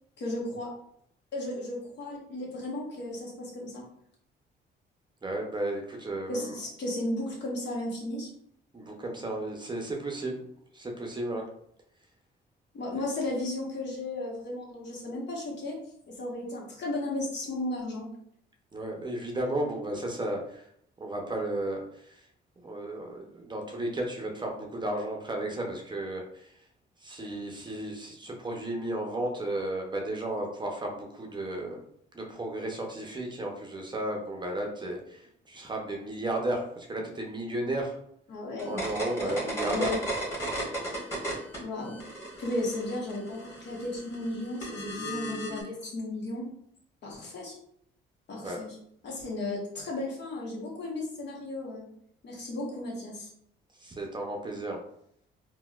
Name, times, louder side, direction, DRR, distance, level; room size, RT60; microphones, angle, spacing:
voice 1, 0.2-0.7 1.3-3.8 6.3-8.3 12.7-15.8 16.1-18.1 38.3-38.8 39.2-39.4 39.7-40.0 41.6-42.0 42.4-46.4 47.0-47.5 48.3-48.8 49.0-51.9 52.2-53.3, left 1 dB, 65° left, -2 dB, 1.1 m, -34 dB
voice 2, 5.2-6.5 8.7-10.4 10.7-11.4 18.7-20.6 21.0-21.8 22.1-22.2 22.6-26.5 27.0-31.8 32.1-35.2 35.5-38.0 38.6-39.9 48.4-48.6 53.8-54.8, right 1 dB, 20° right, 1 dB, 0.6 m, -33 dB
sound 1, 38.6-41.6 41.9-45.6, right 1 dB, 15° left, 1.4 m, -35 dB
4.0 x 2.2 x 2.3 m, 0.70 s
cardioid pair, 90°, 20 cm